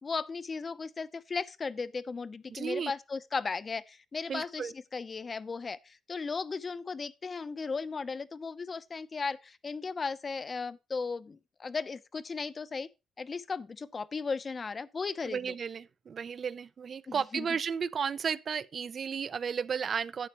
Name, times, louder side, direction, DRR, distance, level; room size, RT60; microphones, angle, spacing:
voice 1, 0.0-12.9 13.2-15.5 17.1-17.5, left 4 dB, 35° left, 0.7 m, -36 dB
voice 2, 2.5-2.9 4.3-4.7 15.2-20.3, right 6 dB, 50° right, 0.5 m, -34 dB
11.5 x 8.9 x 3.0 m
cardioid pair, 90°, 0 cm